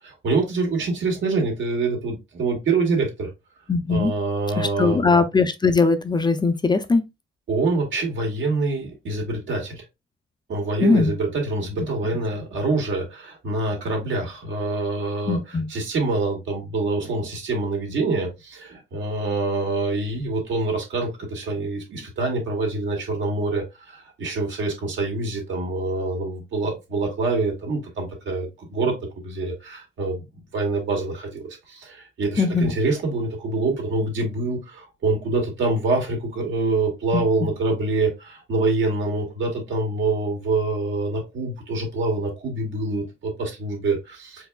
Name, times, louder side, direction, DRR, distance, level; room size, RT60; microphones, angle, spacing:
voice 1, 0.0-3.3 3.9-5.0 7.5-9.8 10.5-28.9 29.2-30.2 30.5-44.5, right 3 dB, 75° right, 2.0 m, -25 dB
voice 2, 3.7-4.1 4.6-7.0 10.8-11.1 15.3-15.7 32.4-32.7 37.1-37.2, left 4 dB, 20° left, 0.5 m, -20 dB
4.6 x 3.5 x 2.3 m
cardioid pair, 90°, 20 cm